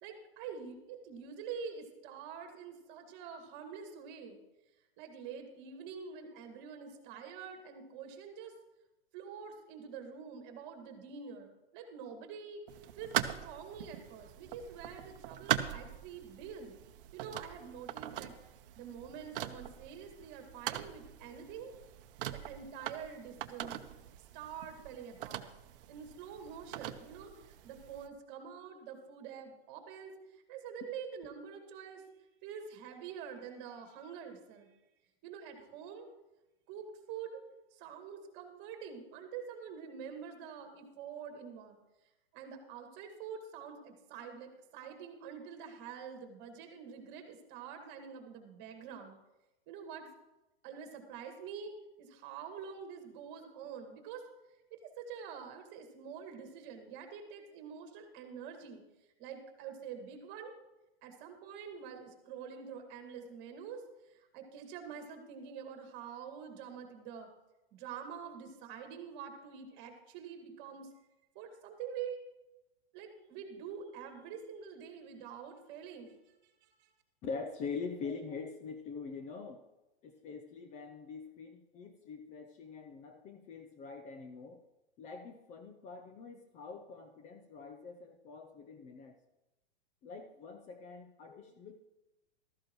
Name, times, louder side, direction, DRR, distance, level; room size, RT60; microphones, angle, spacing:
voice 1, 0.0-4.4 5.0-8.5 9.1-12.6 13.0-16.8 17.1-18.4 18.8-21.7 22.3-23.8 24.3-25.5 25.9-32.0 32.4-34.7 35.2-36.1 36.7-37.4 37.7-41.8 42.3-49.2 49.7-50.1 50.6-51.7 52.0-54.3 54.7-58.8 59.2-60.5 61.0-67.3 67.7-70.9 71.4-72.2 72.9-76.2 76.6-76.9, right 7 dB, 35° right, 5 dB, 2.1 m, -46 dB
sound 1, 12.7-28.1, right 11 dB, 60° right, 0.9 m, -41 dB
voice 2, 77.2-79.6 80.0-84.6 85.0-89.2 90.0-91.8, left 5 dB, 20° left, 6 dB, 0.6 m, -44 dB
14.0 x 13.5 x 3.1 m, 0.98 s
hypercardioid pair, 135°, 31 cm